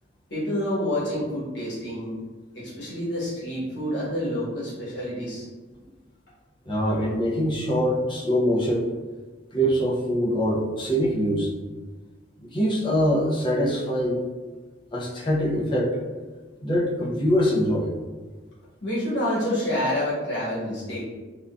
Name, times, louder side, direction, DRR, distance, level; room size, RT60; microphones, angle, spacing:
voice 1, 0.3-2.1 2.5-5.5 18.8-21.0, left 1 dB, 70° left, -9 dB, 1.4 m, -28 dB
voice 2, 6.7-8.9 9.5-11.5 12.4-14.2 14.9-16.0 16.6-17.9, equal, 25° left, -3 dB, 0.5 m, -23 dB
3.7 x 2.2 x 2.4 m, 1.3 s
head